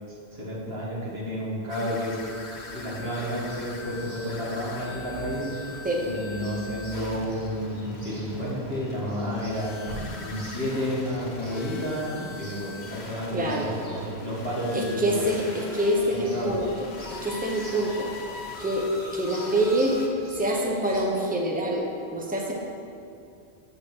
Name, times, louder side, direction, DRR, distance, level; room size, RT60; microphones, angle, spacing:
voice 1, 0.3-2.2 2.7-5.7 6.0-9.8 10.2-15.2 16.1-16.6, equal, 70° right, -6 dB, 2.0 m, -31 dB
sound 1, 1.7-20.1, left 3 dB, 85° left, 1.2 m, -40 dB
Chirp tweet, 2.1-21.0, equal, 40° right, 2.2 m, -46 dB
voice 2, 13.3-13.7 14.7-16.6 17.2-18.1 18.6-20.0 20.4-21.9 22.1-22.5, right 1 dB, 10° right, -1 dB, 0.7 m, -25 dB
8.1 x 3.8 x 6.2 m, 2.5 s
omnidirectional pair, 1.1 m